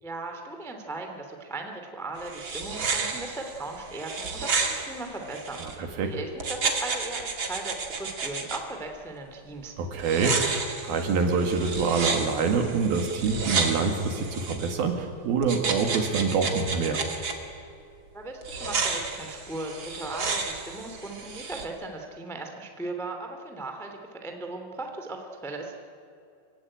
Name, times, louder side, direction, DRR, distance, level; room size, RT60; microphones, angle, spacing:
voice 1, 0.0-9.7 18.1-25.7, right 2 dB, ahead, 3 dB, 0.9 m, -38 dB
sound 1, 2.2-5.8 6.4-8.6 10.0-14.7 15.4-17.4 18.4-21.7, right 4 dB, 40° right, 1.7 m, -31 dB
voice 2, 5.6-6.1 9.8-17.1, right 5 dB, 60° right, 4 dB, 3.1 m, -26 dB
27.0 x 16.5 x 10.0 m, 2.5 s
omnidirectional pair, 5.7 m